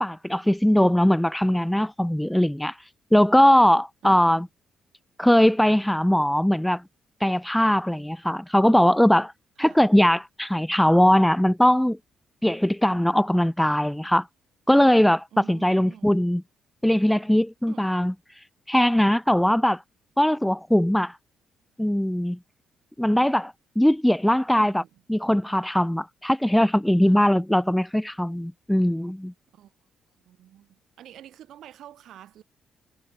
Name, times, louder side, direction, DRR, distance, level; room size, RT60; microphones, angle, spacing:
voice 1, 0.0-2.8 3.1-4.5 5.2-6.8 7.2-9.3 9.6-12.0 12.4-14.3 14.7-16.4 16.8-18.1 18.7-19.8 20.2-21.1 21.8-22.4 23.0-24.8 25.1-29.3, equal, 5° left, 0.5 m, -20 dB
voice 2, 4.0-4.5 9.6-9.8 15.3-16.3 17.7-17.9 24.5-25.0 27.0-27.2 29.5-29.7 30.2-32.4, right 11 dB, 75° right, 6.4 m, -47 dB
cardioid pair, 90°, 0 cm